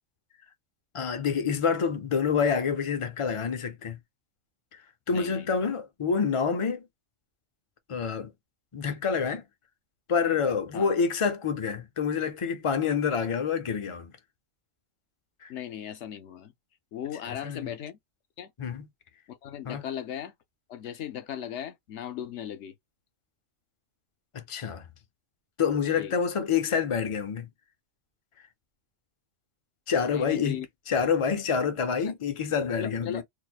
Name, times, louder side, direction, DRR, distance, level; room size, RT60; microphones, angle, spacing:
voice 1, 0.9-4.0 5.1-6.9 7.9-8.3 8.7-9.4 10.1-14.1 15.4-15.5 17.3-17.7 18.6-18.8 19.7-19.8 24.5-24.8 25.6-27.5 29.9-30.6 30.9-33.2, left 6 dB, 35° left, 0.5 m, -27 dB
voice 2, 5.1-5.5 10.7-10.9 15.5-16.5 16.9-18.0 18.4-18.5 19.3-20.3 20.7-22.7 26.0-26.2 30.1-30.7 32.0-32.1 32.8-33.2, left 10 dB, 70° left, 0.9 m, -37 dB
4.7 x 2.1 x 2.3 m
omnidirectional pair, 1.3 m